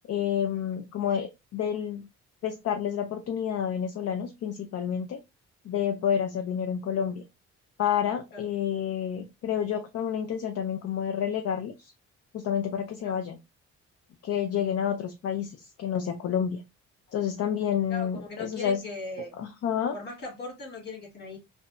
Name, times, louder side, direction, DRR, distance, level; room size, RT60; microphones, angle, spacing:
voice 1, 0.1-2.0 2.4-5.2 5.6-7.2 7.8-11.9 12.3-13.4 14.2-16.6 17.1-18.8 19.4-19.9, left 8 dB, 55° left, 0.5 m, -29 dB
voice 2, 17.9-19.3 19.9-21.4, left 2 dB, 35° left, 1.8 m, -39 dB
3.3 x 2.1 x 2.5 m
cardioid pair, 90°, 30 cm